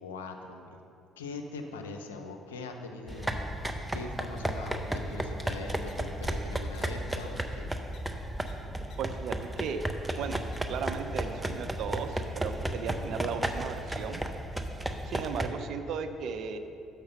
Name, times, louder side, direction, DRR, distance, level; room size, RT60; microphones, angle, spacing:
voice 1, 0.0-0.8 1.2-7.7, left 3 dB, 90° left, 4 dB, 0.5 m, -42 dB
sound 1, 3.1-15.5, right 1 dB, 10° right, 0.6 m, -34 dB
sound 2, 5.9-6.0 6.7-6.8 7.2-7.3 7.9-8.0 8.5-8.6 8.9-9.0 9.3-9.6 10.1-10.2 10.5-10.6, left 8 dB, 60° left, 0.9 m, -55 dB
voice 2, 9.0-9.8 10.2-10.4 10.7-14.2 15.1-16.6, right 6 dB, 60° right, 8 dB, 0.5 m, -36 dB
6.5 x 5.7 x 5.7 m, 2.7 s
hypercardioid pair, 55°, 0 cm